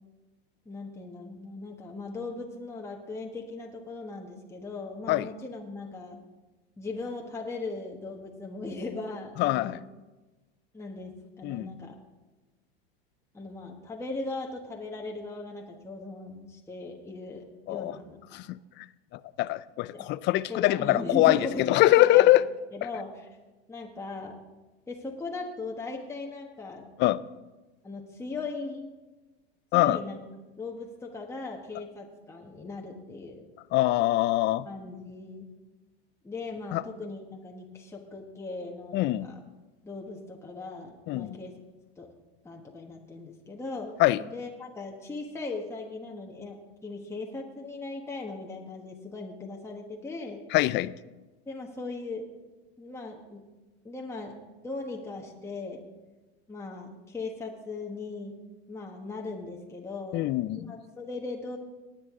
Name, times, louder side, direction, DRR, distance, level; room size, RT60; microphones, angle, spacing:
voice 1, 0.6-6.2 6.8-9.8 10.7-11.9 13.3-18.2 19.9-20.1 20.5-21.7 22.0-22.3 22.7-23.3 23.7-24.3 24.9-26.9 27.8-28.9 29.7-30.2 30.6-33.5 34.6-35.5 36.2-39.4 39.8-41.5 42.0-42.1 42.4-50.4 51.5-52.2 52.8-53.4 53.8-55.8 56.5-58.4 58.7-61.6, left 3 dB, 10° left, 0 dB, 1.3 m, -38 dB
voice 2, 9.4-9.8 11.4-11.7 17.7-17.9 18.3-18.6 19.4-21.4 21.7-22.4 27.0-27.2 29.7-30.0 33.7-34.7 36.7-36.8 38.9-39.3 41.1-41.4 44.0-44.2 50.5-50.9 60.1-60.7, left 16 dB, 35° left, 17 dB, 0.4 m, -23 dB
19.0 x 8.7 x 3.7 m, 1.2 s
supercardioid pair, 120°, 32 cm